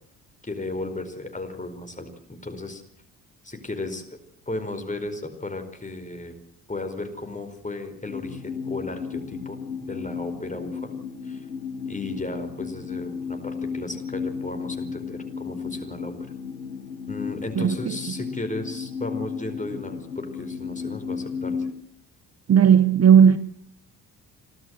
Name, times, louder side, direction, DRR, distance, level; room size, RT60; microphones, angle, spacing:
voice 1, 0.4-2.8 3.4-4.0 4.5-6.3 6.7-10.9 11.2-11.4 11.8-16.1 17.1-21.7, left 2 dB, 15° left, 4.8 m, -35 dB
sound 1, 8.1-21.7, left 5 dB, 90° left, 1.4 m, -34 dB
voice 2, 17.6-18.2 22.5-23.4, right 8 dB, 30° right, 0.9 m, -16 dB
28.0 x 13.0 x 7.7 m
hypercardioid pair, 50°, 48 cm